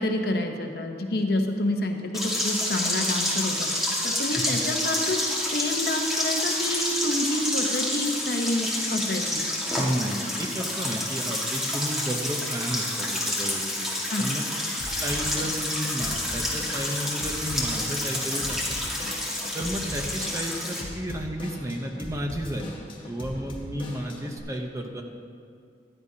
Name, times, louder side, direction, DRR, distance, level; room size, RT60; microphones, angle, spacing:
voice 1, 0.0-9.4 14.1-14.4, left 1 dB, 60° left, 4 dB, 0.8 m, -28 dB
sound 1, 2.1-20.8, left 1 dB, ahead, 1.6 m, -28 dB
voice 2, 9.7-13.9 14.2-14.4 14.8-18.6 19.5-22.7 23.1-25.0, equal, 15° right, 2 dB, 0.7 m, -32 dB
Drum kit / Drum, 14.8-24.4, left 1 dB, 30° left, 1.1 m, -39 dB
14.5 x 10.5 x 2.8 m, 2.3 s
head